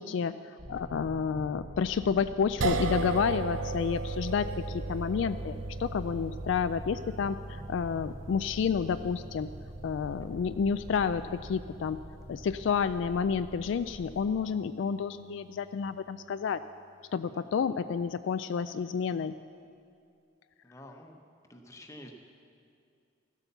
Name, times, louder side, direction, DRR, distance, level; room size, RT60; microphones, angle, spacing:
voice 1, 0.0-9.5 9.8-12.0 12.3-16.6 17.1-19.3, left 6 dB, 65° left, 12 dB, 0.3 m, -30 dB
sound 1, 0.6-14.4, equal, 20° right, 0.6 m, -46 dB
sound 2, 2.6-14.9, right 3 dB, 75° right, 0.7 m, -38 dB
voice 2, 20.6-21.2 21.5-22.1, left 1 dB, 15° left, 3 dB, 0.9 m, -49 dB
15.0 x 8.2 x 6.8 m, 2.3 s
head